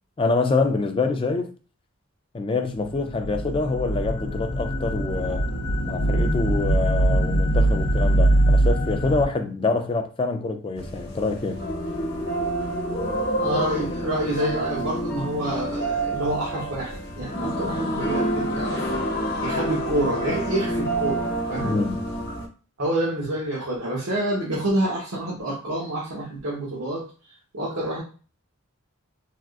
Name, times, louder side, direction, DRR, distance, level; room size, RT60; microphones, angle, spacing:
voice 1, 0.2-1.5 2.3-5.5 5.9-11.7 21.6-22.1, left 3 dB, 25° left, 0.3 m, -26 dB
sound 1, 2.9-9.3, right 1 dB, 90° left, 0.5 m, -22 dB
sound 2, 10.8-22.5, right 1 dB, 55° left, 0.9 m, -28 dB
voice 2, 13.4-18.9 19.4-21.8 22.8-27.0 27.5-28.0, right 1 dB, 80° right, 0.9 m, -27 dB
3.5 x 2.4 x 2.4 m
head